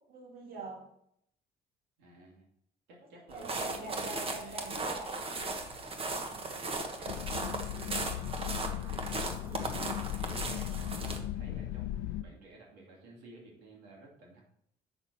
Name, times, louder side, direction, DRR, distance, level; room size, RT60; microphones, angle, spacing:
voice 1, 0.1-0.9 3.3-5.3, right 3 dB, 60° right, -1 dB, 2.3 m, -44 dB
voice 2, 2.0-2.5 2.9-4.7 6.1-6.5 6.8-14.4, right 2 dB, 90° right, -1 dB, 2.5 m, -53 dB
sound 1, 3.3-11.2, right 2 dB, 35° right, 1.2 m, -37 dB
sound 2, 7.1-12.2, left 12 dB, 90° left, 0.5 m, -37 dB
8.1 x 6.1 x 4.2 m, 0.71 s
cardioid pair, 110°, 17 cm